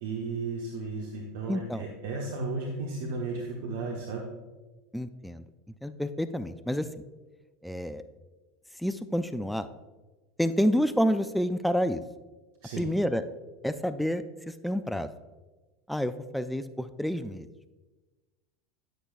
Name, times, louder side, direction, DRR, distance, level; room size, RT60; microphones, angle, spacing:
voice 1, 0.0-4.2 12.6-12.9, right 3 dB, 60° right, 0 dB, 1.0 m, -34 dB
voice 2, 1.5-1.9 4.9-5.4 5.8-6.9 7.6-8.0 8.8-9.7 10.4-12.0 12.8-13.2 13.6-14.2 14.6-15.1 15.9-17.5, equal, ahead, 12 dB, 0.4 m, -28 dB
9.6 x 9.2 x 2.4 m, 1.2 s
figure-of-eight pair, 80°, 0 cm